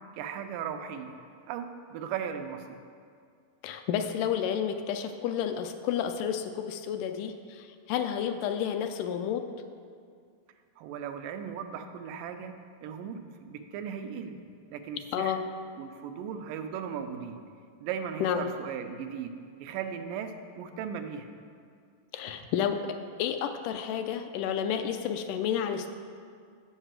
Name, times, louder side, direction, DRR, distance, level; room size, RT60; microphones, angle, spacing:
voice 1, 0.1-1.2 1.5-2.8 10.8-14.4 14.7-15.4 15.8-17.4 17.8-19.3 19.6-21.3, right 7 dB, 85° right, 7 dB, 2.3 m, -37 dB
voice 2, 3.6-9.5 15.1-15.4 18.2-18.5 22.1-25.9, left 8 dB, 80° left, 7 dB, 2.0 m, -31 dB
8.0 x 5.5 x 7.4 m, 2.2 s
omnidirectional pair, 3.8 m